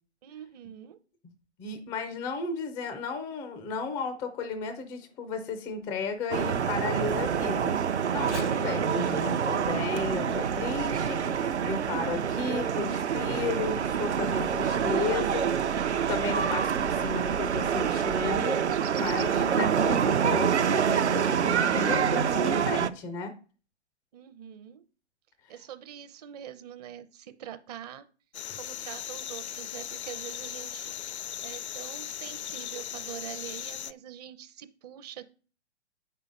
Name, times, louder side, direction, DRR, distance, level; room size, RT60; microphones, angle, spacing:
voice 1, 0.2-1.0 24.1-24.8 25.5-28.1 28.5-35.2, right 10 dB, 35° right, 11 dB, 0.6 m, -44 dB
voice 2, 1.6-7.8 8.1-15.8 16.1-18.6 19.0-23.3, left 4 dB, 5° left, 8 dB, 0.3 m, -34 dB
Race car auto racing / Accelerating revving vroom, 4.1-12.0 12.6-12.7 13.3-18.1, left 3 dB, 90° left, 1.0 m, -49 dB
sound 1, 6.3-22.9, right 7 dB, 75° right, 0.7 m, -27 dB
sound 2, 28.3-33.9, left 10 dB, 70° left, 0.5 m, -38 dB
8.1 x 5.6 x 5.2 m, 0.39 s
figure-of-eight pair, 120°, 34 cm